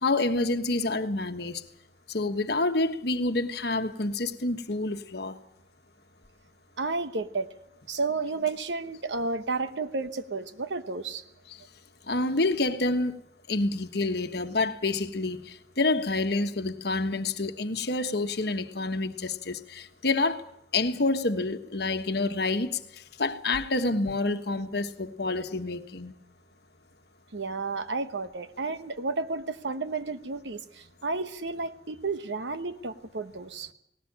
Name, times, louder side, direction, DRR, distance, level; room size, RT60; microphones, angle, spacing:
voice 1, 0.0-1.6 2.1-5.4 11.5-11.6 12.1-13.2 13.5-20.4 20.7-22.8 23.2-26.1, left 2 dB, 60° left, 1.3 m, -28 dB
voice 2, 6.8-7.5 7.9-11.2 27.3-33.7, right 3 dB, 80° right, 1.1 m, -32 dB
19.0 x 18.0 x 8.8 m
head